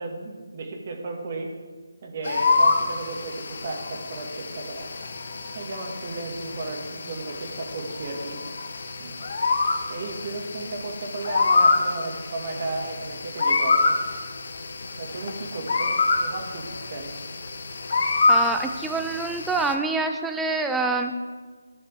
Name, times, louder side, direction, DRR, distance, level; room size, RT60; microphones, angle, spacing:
voice 1, 0.0-1.5 2.0-3.3 3.6-4.9 5.5-8.4 9.0-9.1 9.9-14.0 15.0-16.6 16.9-17.1, right 2 dB, 45° right, 1 dB, 1.9 m, -34 dB
sound 1, 2.2-19.8, left 3 dB, 55° left, 1.0 m, -26 dB
voice 2, 18.3-21.1, right 3 dB, 5° right, 5 dB, 0.5 m, -26 dB
13.5 x 6.5 x 3.6 m, 1.4 s
figure-of-eight pair, 155°, 0 cm